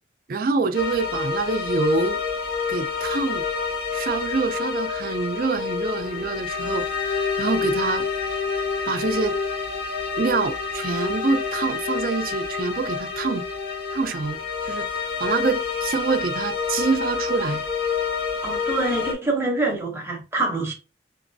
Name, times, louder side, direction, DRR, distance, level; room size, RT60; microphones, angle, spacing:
voice 1, 0.3-2.2 2.7-3.4 3.9-8.1 8.9-9.4 10.2-13.4 13.9-14.9 15.2-17.6, right 4 dB, 50° right, 0.4 m, -26 dB
sound 1, 0.7-19.1, left 5 dB, 55° left, 0.6 m, -28 dB
voice 2, 18.4-20.7, right 2 dB, 15° right, 0.8 m, -25 dB
3.0 x 2.9 x 2.6 m
head